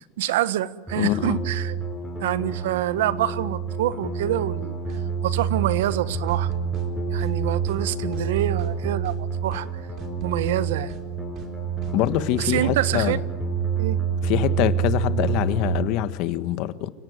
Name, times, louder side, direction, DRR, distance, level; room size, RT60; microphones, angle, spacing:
voice 1, 0.0-1.8 2.2-6.5 7.1-9.8 10.2-10.9 12.4-13.2 13.8-14.0, right 13 dB, 80° right, 15 dB, 1.3 m, -26 dB
sound 1, 0.9-15.8, right 6 dB, 5° right, 7.1 m, -28 dB
voice 2, 1.0-1.4 11.9-13.2 14.2-16.9, left 13 dB, 45° left, 12 dB, 1.5 m, -24 dB
sound 2, 4.9-5.1 5.4-5.5 5.8-6.0 6.3-6.9 7.2-7.4 7.7-7.8 8.1-8.7 9.0-9.2 9.5-9.7 10.0-10.6 10.9-11.1 11.4-11.5 11.8-12.2, right 7 dB, 35° right, 3.7 m, -43 dB
30.0 x 17.5 x 9.6 m, 1.1 s
supercardioid pair, 160°, 0 cm